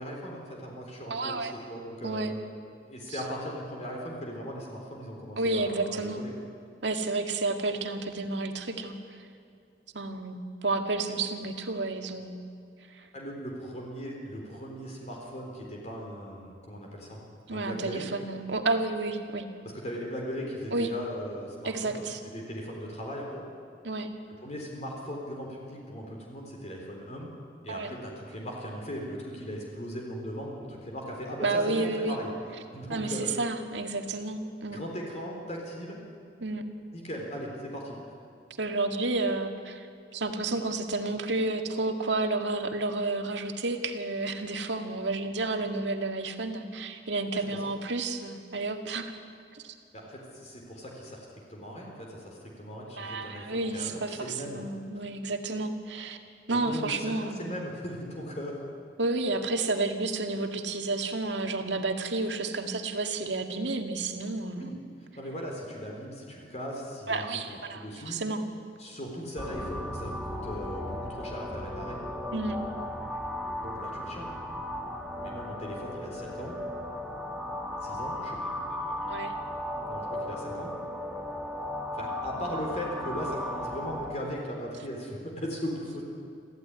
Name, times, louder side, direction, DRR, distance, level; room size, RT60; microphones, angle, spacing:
voice 1, 0.0-2.4 2.8-6.3 13.1-17.2 17.5-18.1 19.7-23.4 24.4-27.3 27.6-32.3 32.7-33.3 34.7-36.0 36.9-38.0 47.3-47.7 49.9-54.6 56.5-58.6 64.5-64.8 65.2-68.2 68.8-72.0 73.6-74.4 75.2-76.6 77.8-78.6 79.9-80.7 81.9-86.0, equal, 40° left, -1 dB, 3.9 m, -38 dB
voice 2, 1.1-1.5 2.0-2.3 3.1-3.2 5.4-6.2 6.8-8.9 9.9-12.4 12.9-13.1 17.5-19.5 20.7-20.9 21.6-22.2 23.8-24.1 27.7-27.9 31.4-32.2 32.9-34.8 36.4-36.7 38.6-39.9 40.1-49.1 49.5-49.7 52.9-54.2 54.4-56.2 56.5-57.5 59.0-64.7 67.1-68.4 72.3-72.6 79.1-79.3, right 2 dB, 85° right, 5 dB, 2.0 m, -31 dB
sound 1, 69.4-84.1, left 1 dB, ahead, 1.9 m, -36 dB
26.5 x 15.0 x 9.7 m, 2.4 s
head